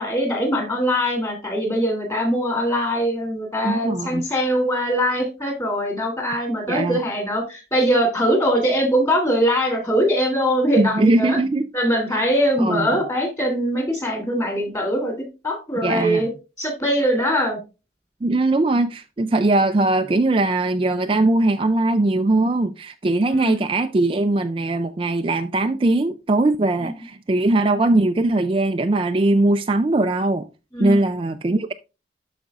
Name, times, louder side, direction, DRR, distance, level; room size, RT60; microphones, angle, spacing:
voice 1, 0.0-11.4 11.7-15.1 15.4-16.3 16.6-17.6 23.3-23.6 26.8-26.9 30.7-31.0, equal, 20° left, 2.8 m, -22 dB
voice 2, 3.6-4.2 6.7-7.0 10.8-11.7 12.6-13.0 15.8-16.2 18.2-30.5 30.8-31.7, right 2 dB, 30° right, 0.4 m, -20 dB
12.0 x 5.0 x 2.4 m
head